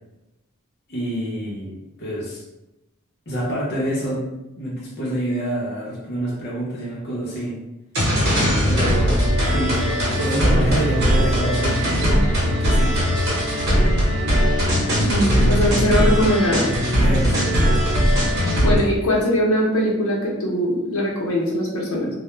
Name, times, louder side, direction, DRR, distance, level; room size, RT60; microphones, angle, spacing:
voice 1, 0.9-2.4 3.3-4.3 4.5-7.6 8.6-13.1 17.0-17.8, right 1 dB, 50° left, -5 dB, 0.6 m, -27 dB
sound 1, 7.9-18.8, equal, 50° right, 0.9 m, -19 dB
voice 2, 15.0-16.7 18.6-22.1, equal, 90° left, -3 dB, 0.7 m, -21 dB
2.1 x 2.0 x 3.0 m, 0.96 s
head